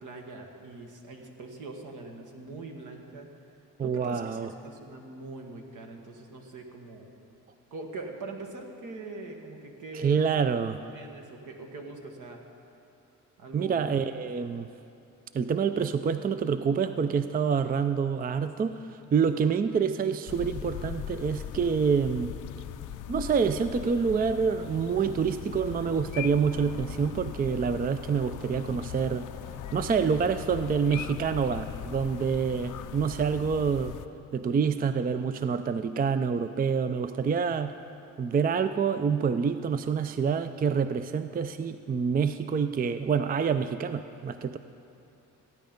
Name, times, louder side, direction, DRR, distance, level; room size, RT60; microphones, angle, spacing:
voice 1, 0.0-3.3 3.8-7.1 7.7-10.2 10.9-12.4 13.4-13.9, right 3 dB, 70° right, 3 dB, 1.6 m, -42 dB
voice 2, 3.8-4.5 9.9-10.8 13.5-14.7 15.3-22.3 23.1-29.3 29.7-34.0 34.3-37.7 38.2-44.6, right 6 dB, 30° right, 10 dB, 0.4 m, -27 dB
sound 1, 20.3-34.1, left 11 dB, 70° left, 0.5 m, -40 dB
15.0 x 9.3 x 5.2 m, 2.6 s
cardioid pair, 80°, 32 cm